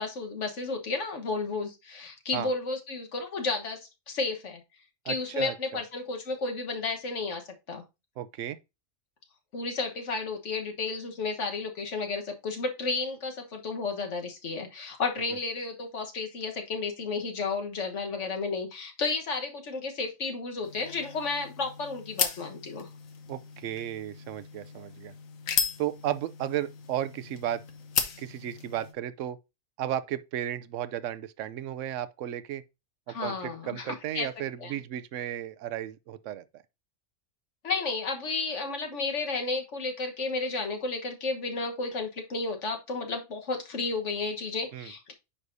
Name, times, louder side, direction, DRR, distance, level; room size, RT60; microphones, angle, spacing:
voice 1, 0.0-3.8 4.1-4.6 5.0-7.4 7.7-7.8 9.5-22.9 33.1-34.3 34.6-34.7 37.6-45.1, left 3 dB, 65° left, 1.6 m, -32 dB
voice 2, 5.0-5.8 8.2-8.6 23.3-25.1 25.8-27.6 28.2-29.4 29.8-32.6 33.1-36.6 44.7-44.9, right 11 dB, 70° right, 0.9 m, -34 dB
sound 1, 20.6-28.9, left 6 dB, 85° left, 1.3 m, -35 dB
9.8 x 4.8 x 2.6 m
omnidirectional pair, 1.4 m